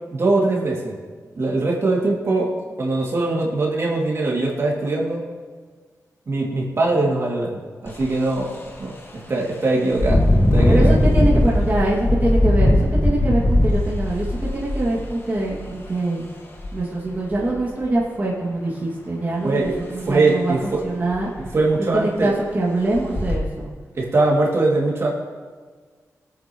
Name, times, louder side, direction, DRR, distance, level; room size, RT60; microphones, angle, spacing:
voice 1, 0.1-1.0 1.3-2.5 2.8-5.3 6.3-8.9 9.3-10.3 10.5-10.9 19.4-19.8 20.1-20.8 21.5-22.3 24.0-25.1, right 2 dB, 50° right, -3 dB, 2.4 m, -21 dB
Engine, 7.9-8.1 8.5-8.7 9.9-15.7 16.6-16.7 17.1-17.9 19.6-19.8 20.1-20.2 20.7-20.8 21.1-21.6 22.2-22.3 22.9-23.4, left 1 dB, 40° left, 1.7 m, -19 dB
voice 2, 10.7-16.3 16.7-21.3 21.9-23.7, right 2 dB, 30° right, -5 dB, 2.1 m, -24 dB
21.5 x 8.8 x 3.0 m, 1.5 s
wide cardioid pair, 110°, 6 cm